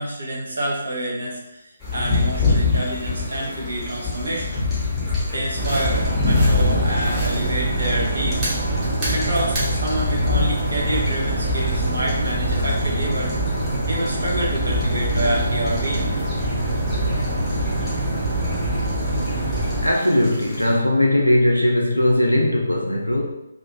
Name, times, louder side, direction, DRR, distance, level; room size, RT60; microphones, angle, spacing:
voice 1, 0.0-4.7 5.3-13.3 13.9-16.1 17.5-17.6, right 1 dB, 60° right, -3 dB, 0.6 m, -27 dB
sound 1, 1.8-20.7, left 3 dB, 5° left, 0.8 m, -27 dB
sound 2, 5.6-19.9, right 1 dB, 25° right, 0.9 m, -24 dB
voice 2, 19.8-23.2, left 1 dB, 85° left, 0 dB, 0.4 m, -19 dB
2.5 x 2.4 x 2.7 m, 0.90 s
figure-of-eight pair, 145°, 0 cm